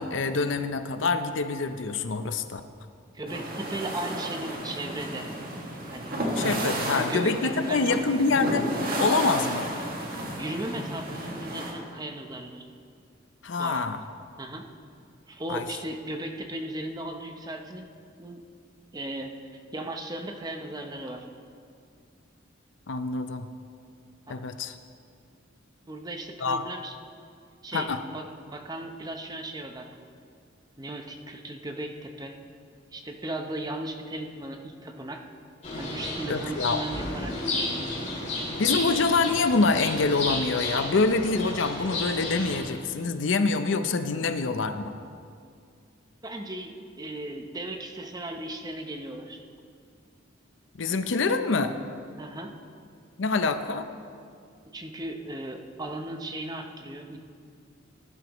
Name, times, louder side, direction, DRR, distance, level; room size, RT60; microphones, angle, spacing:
voice 1, 0.0-2.6 6.4-8.7 9.0-9.7 13.4-14.0 15.5-15.6 22.9-23.5 24.3-24.7 26.4-26.6 27.7-28.0 36.3-36.8 38.6-44.9 50.8-51.7 53.2-53.9, left 3 dB, 70° left, 9 dB, 0.6 m, -26 dB
voice 2, 3.1-5.3 5.9-6.1 6.6-8.0 10.4-12.7 13.6-13.8 14.4-14.7 15.3-17.9 18.2-18.4 18.9-21.3 24.3-24.4 25.9-27.0 27.6-30.1 30.8-32.4 32.9-35.2 35.8-37.4 46.2-49.4 52.2-52.5 54.7-57.2, right 1 dB, 20° right, 4 dB, 0.8 m, -36 dB
sound 1, 3.3-11.7, right 1 dB, 50° right, 1.7 m, -32 dB
sound 2, 35.6-42.6, left 2 dB, 40° left, 3.3 m, -32 dB
18.0 x 11.0 x 3.1 m, 2.3 s
head